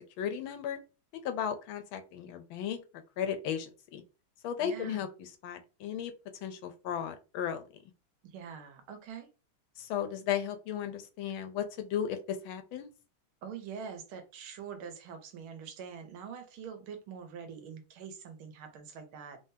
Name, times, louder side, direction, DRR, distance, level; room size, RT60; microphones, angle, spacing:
voice 1, 0.2-0.8 1.2-2.8 3.2-4.0 4.4-6.1 6.4-7.6 9.8-12.9, left 9 dB, 85° left, 9 dB, 1.5 m, -35 dB
voice 2, 4.6-5.1 8.2-9.3 13.4-19.4, right 7 dB, 90° right, 6 dB, 1.7 m, -44 dB
3.8 x 3.6 x 2.7 m, 0.32 s
omnidirectional pair, 2.2 m